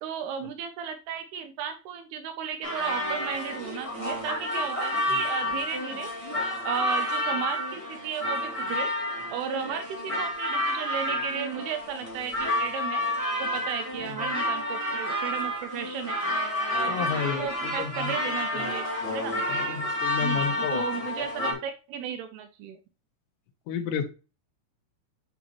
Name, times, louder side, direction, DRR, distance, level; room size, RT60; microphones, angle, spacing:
voice 1, 0.0-6.1 6.6-8.9 9.3-13.0 13.4-16.2 16.7-19.4 20.2-22.8, right 7 dB, 80° right, 7 dB, 2.4 m, -35 dB
sound 1, 2.6-21.5, left 1 dB, 25° left, 0.7 m, -30 dB
voice 2, 16.9-18.1 19.5-20.9 21.4-21.6 23.7-24.1, left 7 dB, 85° left, 8 dB, 2.9 m, -31 dB
8.6 x 4.1 x 2.9 m, 0.32 s
omnidirectional pair, 5.0 m